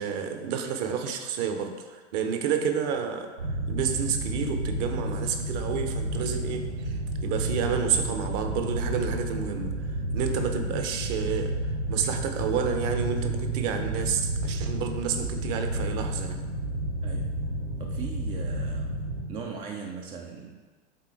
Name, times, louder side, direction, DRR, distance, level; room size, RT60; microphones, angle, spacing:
voice 1, 0.0-3.3 3.7-11.5 11.9-16.4, right 7 dB, 40° right, 6 dB, 0.8 m, -30 dB
sound 1, 3.4-19.2, right 1 dB, 70° right, 1.1 m, -31 dB
voice 2, 17.0-17.3 17.8-19.0 19.3-20.6, right 5 dB, 15° right, 2 dB, 0.4 m, -39 dB
8.1 x 3.7 x 4.4 m, 1.4 s
figure-of-eight pair, 90°, 34 cm